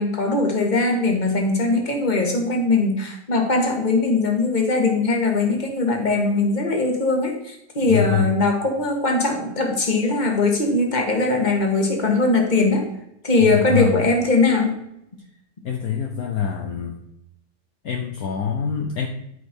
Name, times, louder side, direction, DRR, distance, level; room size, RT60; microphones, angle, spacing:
voice 1, 0.0-12.9 13.2-14.7, left 3 dB, 25° left, 2 dB, 1.7 m, -20 dB
voice 2, 7.8-8.3 13.4-14.0 15.6-17.0 17.8-19.1, left 7 dB, 60° left, 3 dB, 1.3 m, -25 dB
12.5 x 5.3 x 4.5 m, 0.79 s
omnidirectional pair, 1.9 m